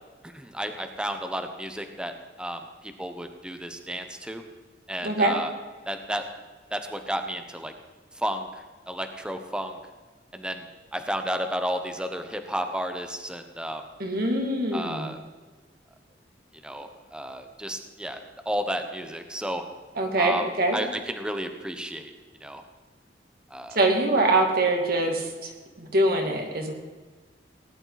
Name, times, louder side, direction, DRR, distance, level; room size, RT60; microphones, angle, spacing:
voice 1, 0.2-2.6 3.0-4.4 4.9-5.5 5.9-6.2 6.7-7.7 8.1-8.5 8.9-9.8 10.3-10.7 10.9-13.8 14.7-15.2 16.6-19.6 20.2-20.5 20.7-22.1 22.4-22.6 23.5-23.8, equal, 5° right, 6 dB, 1.0 m, -32 dB
voice 2, 5.0-5.4 14.0-15.1 20.0-20.8 23.7-25.5 25.8-26.7, right 2 dB, 55° right, 2 dB, 2.5 m, -24 dB
18.5 x 11.0 x 4.1 m, 1.3 s
head